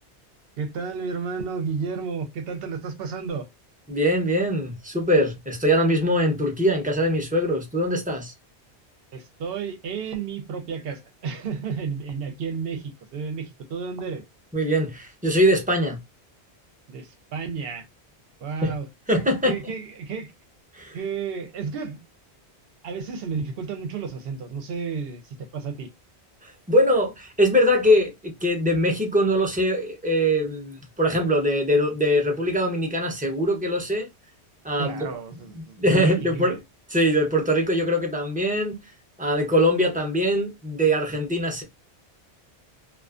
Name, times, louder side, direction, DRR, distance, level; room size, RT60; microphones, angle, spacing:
voice 1, 0.6-3.5 9.1-14.2 16.9-17.9 18.4-18.9 19.4-20.3 20.9-22.0 22.8-25.9 34.8-36.6, right 5 dB, 65° right, 0.8 m, -32 dB
voice 2, 3.9-8.3 14.5-16.0 18.6-18.7 19.1-19.5 20.7-21.0 26.4-28.1 28.4-34.1 34.6-35.1 35.6-36.5 36.9-38.8 39.2-41.6, equal, 10° right, 0.5 m, -22 dB
2.4 x 2.4 x 2.4 m
omnidirectional pair, 1.1 m